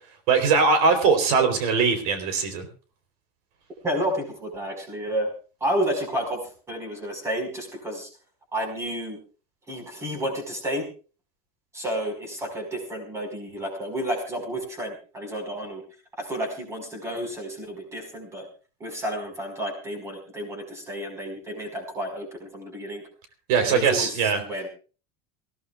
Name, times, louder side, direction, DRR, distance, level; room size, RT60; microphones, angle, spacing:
voice 1, 0.3-2.7 23.5-24.4, right 5 dB, 75° right, 7 dB, 3.6 m, -21 dB
voice 2, 3.8-5.3 5.6-8.1 8.5-9.2 9.7-10.9 11.7-15.8 16.2-18.5 18.8-23.0 23.6-24.7, right 1 dB, 15° right, 3 dB, 5.0 m, -31 dB
25.0 x 16.5 x 2.4 m, 0.37 s
cardioid pair, 175°, 20 cm